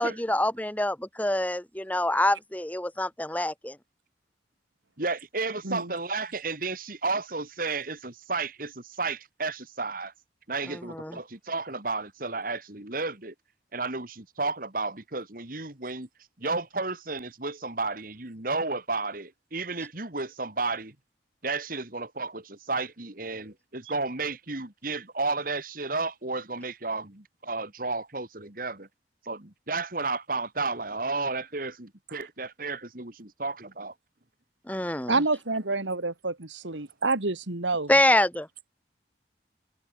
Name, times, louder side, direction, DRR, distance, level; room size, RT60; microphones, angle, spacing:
voice 1, 0.0-3.7 11.0-11.1 34.7-35.2 37.9-38.5, left 1 dB, 10° left, 1.4 m, -25 dB
voice 2, 5.0-10.1 10.5-13.3 13.7-16.1 16.4-21.0 21.4-28.9 29.2-33.9, right 3 dB, 50° right, 2.7 m, -32 dB
voice 3, 35.1-37.9, right 3 dB, 90° right, 2.4 m, -28 dB
head